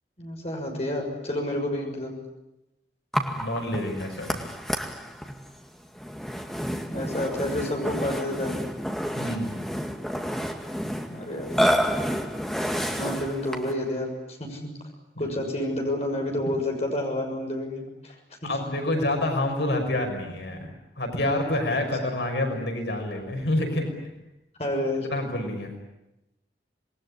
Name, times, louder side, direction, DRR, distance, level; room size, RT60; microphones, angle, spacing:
voice 1, 0.2-2.1 6.9-8.5 11.1-11.5 12.9-14.7 15.2-18.1 18.4-18.5 21.6-21.8 24.6-25.1, left 1 dB, 35° left, 1 dB, 6.6 m, -29 dB
Burping eructation, 3.1-13.8, equal, ahead, 2.1 m, -30 dB
voice 2, 3.4-4.4 9.2-9.6 15.2-15.3 18.4-20.7 21.0-23.9 25.1-25.7, left 1 dB, 85° left, 4 dB, 5.8 m, -27 dB
27.5 x 21.0 x 10.0 m, 0.92 s
head